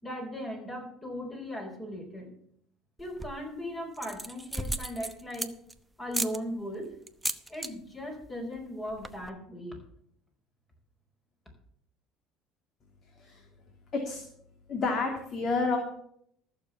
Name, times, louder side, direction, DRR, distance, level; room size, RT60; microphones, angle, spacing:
voice 1, 0.0-2.3 3.0-5.6 6.0-6.9 7.5-9.8, equal, 20° left, 3 dB, 5.0 m, -38 dB
sound 1, 3.0-3.5 3.9-5.7 6.1-6.4 7.1-7.7 8.0-8.3 8.6-8.7 8.9-9.3, right 2 dB, 10° right, 0.8 m, -35 dB
voice 2, 13.9-14.2 14.7-15.8, left 4 dB, 45° left, 3 dB, 2.5 m, -29 dB
14.0 x 7.0 x 7.1 m, 0.67 s
cardioid pair, 110°, 0 cm